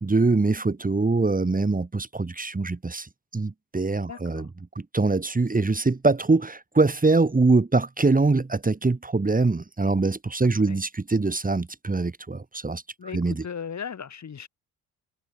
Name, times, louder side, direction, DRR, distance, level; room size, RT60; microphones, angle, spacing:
voice 1, 0.0-4.5 4.7-12.8 13.1-13.4, right 3 dB, 20° right, 3.1 m, -23 dB
voice 2, 4.1-4.5 10.4-10.8 13.0-14.5, left 7 dB, 45° left, 3.9 m, -37 dB
hypercardioid pair, 60°, 39 cm